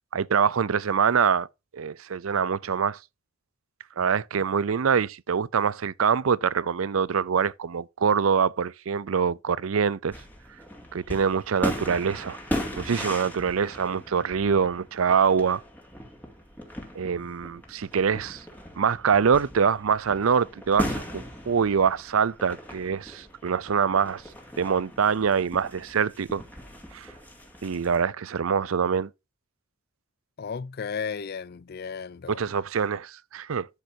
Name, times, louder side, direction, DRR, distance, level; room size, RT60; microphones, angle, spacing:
voice 1, 0.1-1.5 1.7-3.0 4.0-10.2 10.9-12.4 12.7-15.6 16.9-18.4 18.8-24.2 24.6-26.4 26.9-27.1 27.6-29.1 32.3-33.7, right 6 dB, 85° right, 0.5 m, -24 dB
sound 1, 10.1-28.0, equal, 10° left, 2.3 m, -38 dB
voice 2, 30.4-32.5, left 6 dB, 50° left, 0.4 m, -34 dB
12.5 x 6.7 x 2.8 m
head